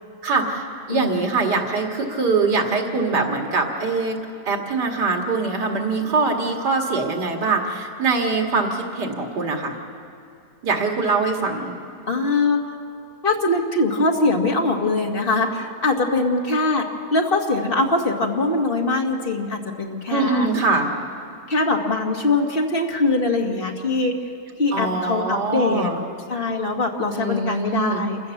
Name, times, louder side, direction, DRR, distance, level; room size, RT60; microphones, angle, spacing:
voice 1, 0.2-4.2 4.5-9.8 10.6-11.7 20.1-20.9 24.7-26.0 27.1-28.0, right 3 dB, 85° right, 2 dB, 2.7 m, -23 dB
voice 2, 0.9-1.4 12.1-12.6 13.2-16.8 17.1-20.5 21.5-24.1 24.6-25.9 26.3-28.2, left 2 dB, 35° left, 2 dB, 2.0 m, -22 dB
27.5 x 15.5 x 7.2 m, 2.5 s
omnidirectional pair, 1.8 m